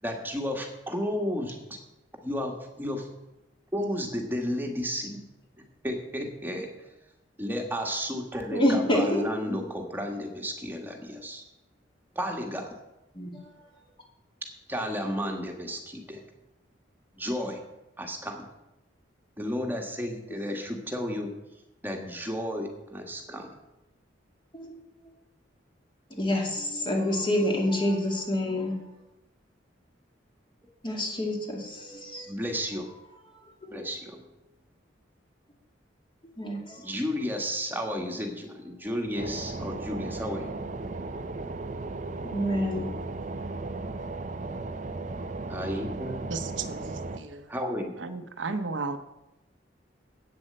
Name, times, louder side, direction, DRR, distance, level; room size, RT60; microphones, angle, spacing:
voice 1, 0.0-1.8 2.2-3.1 3.7-5.2 5.8-6.9 7.4-11.5 12.2-12.8 14.7-16.2 17.1-17.6 18.0-18.5 19.4-21.3 21.8-23.5 32.3-32.9 33.7-34.2 36.8-40.6 45.5-46.2 47.5-48.0, equal, 10° right, 3 dB, 1.6 m, -32 dB
voice 2, 8.5-9.6 13.1-13.3 24.5-24.7 26.2-28.8 30.8-32.3 33.6-33.8 36.4-36.8 42.3-42.9, left 1 dB, 25° left, 0 dB, 2.5 m, -27 dB
sound 1, 39.2-47.2, right 3 dB, 40° right, 0.6 m, -36 dB
voice 3, 46.3-47.5 48.0-49.0, right 4 dB, 80° right, 9 dB, 0.9 m, -34 dB
8.9 x 7.6 x 7.7 m, 0.92 s
head